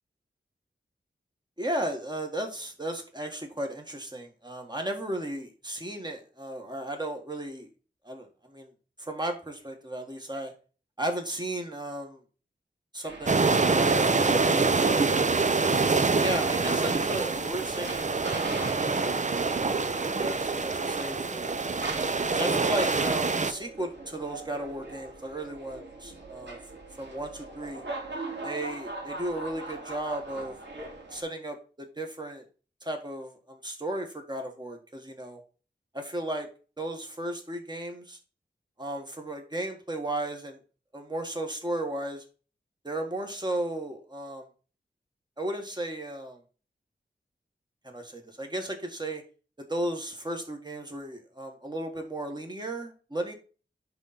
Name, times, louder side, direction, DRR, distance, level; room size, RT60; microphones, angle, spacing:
voice 1, 1.6-7.7 8.0-8.7 9.0-10.5 11.0-12.2 12.9-15.7 16.1-18.2 18.4-18.7 19.6-21.6 22.3-27.8 28.4-32.4 32.8-35.4 35.9-36.5 36.8-38.2 38.8-40.6 40.9-42.2 42.8-44.5 45.4-46.4 47.8-49.2 49.7-53.3, right 1 dB, 25° right, 3 dB, 1.9 m, -35 dB
sound 1, 13.0-31.2, right 2 dB, 70° right, 2.7 m, -42 dB
sound 2, 13.2-23.5, right 4 dB, 40° right, 0.7 m, -25 dB
10.5 x 3.9 x 4.4 m, 0.37 s
wide cardioid pair, 80°, 19 cm